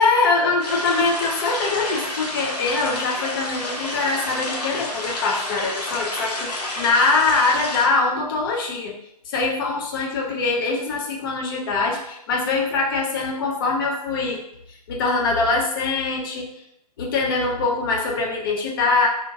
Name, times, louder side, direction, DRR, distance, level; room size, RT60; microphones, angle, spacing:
voice 1, 0.0-9.0 9.3-14.4 14.9-16.5 17.0-19.1, left 3 dB, 35° left, -1 dB, 0.5 m, -23 dB
sound 1, 0.6-7.9, left 1 dB, 85° left, 0.9 m, -29 dB
2.8 x 2.1 x 2.6 m, 0.74 s
hypercardioid pair, 140°, 20 cm